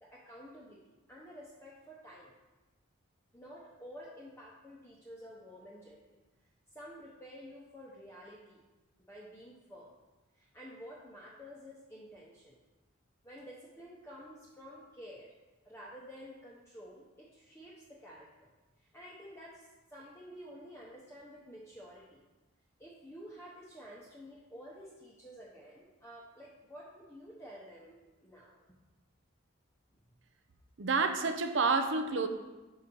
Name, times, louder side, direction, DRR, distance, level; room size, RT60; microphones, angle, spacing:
voice 1, 0.0-2.3 3.3-6.0 6.7-8.6 9.1-9.9 10.4-12.6 13.2-15.3 15.6-18.5 18.8-22.2 22.8-28.6, equal, 10° left, -5 dB, 0.7 m, -51 dB
voice 2, 30.8-32.3, right 4 dB, 60° right, 7 dB, 0.6 m, -29 dB
6.3 x 4.3 x 5.2 m, 1.1 s
head